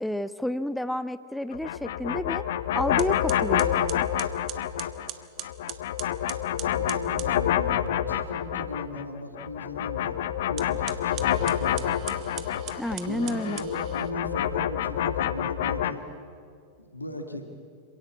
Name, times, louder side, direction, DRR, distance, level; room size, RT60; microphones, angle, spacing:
voice 1, 0.0-2.4 2.7-4.1 12.8-13.6, left 1 dB, 5° left, 14 dB, 0.7 m, -30 dB
sound 1, 1.5-5.1 5.4-9.1 9.3-15.9, left 11 dB, 55° left, 0.8 m, -28 dB
sound 2, 2.4-2.6 3.0-7.4 10.5-14.1, right 13 dB, 35° right, 1.3 m, -41 dB
voice 2, 6.6-10.2 10.5-12.5 13.1-16.1 16.8-17.5, left 1 dB, 85° left, 4 dB, 2.0 m, -37 dB
sound 3, 8.2-12.9, right 1 dB, 65° right, 6.6 m, -53 dB
26.5 x 17.0 x 8.5 m, 2.4 s
figure-of-eight pair, 90°, 0 cm